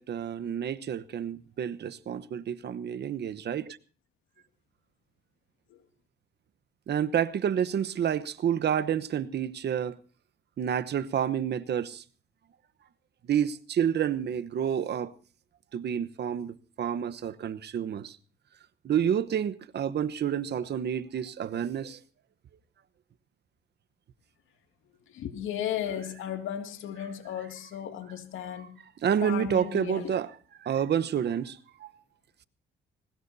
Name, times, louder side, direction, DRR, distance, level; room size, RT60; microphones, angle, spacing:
voice 1, 0.0-3.8 6.9-9.9 10.6-12.0 13.3-15.1 15.7-18.2 18.8-22.0 29.0-30.3 30.6-31.9, right 9 dB, 60° right, 1.1 m, -29 dB
voice 2, 25.1-28.8 29.2-30.1, left 10 dB, 85° left, 2.4 m, -35 dB
20.5 x 20.0 x 2.8 m
cardioid pair, 90°, 20 cm